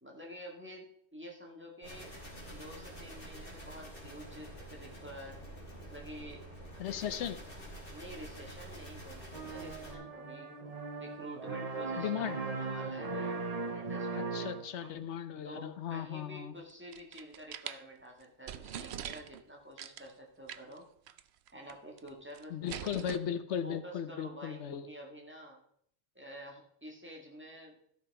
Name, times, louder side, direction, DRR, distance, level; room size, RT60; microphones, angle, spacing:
voice 1, 0.0-2.1 2.5-5.4 5.8-6.5 7.9-10.5 11.0-13.4 13.7-14.5 15.4-20.9 21.5-23.1 23.6-25.6 26.2-27.8, equal, 10° right, -1 dB, 1.9 m, -49 dB
sound 1, 1.8-9.9, right 1 dB, 50° left, 3.2 m, -48 dB
voice 2, 6.8-7.4 12.0-12.4 14.1-16.5 22.5-24.9, left 9 dB, 80° left, 12 dB, 1.0 m, -37 dB
sound 2, 9.3-14.9, right 4 dB, 40° right, 0.8 m, -38 dB
sound 3, 16.7-17.8 18.2-18.3 18.5-19.4 19.8-20.1 20.5-20.8 21.1-21.2 21.5-22.1 22.3-23.2, right 10 dB, 70° right, 0.8 m, -43 dB
13.0 x 6.0 x 4.8 m, 0.66 s
omnidirectional pair, 1.2 m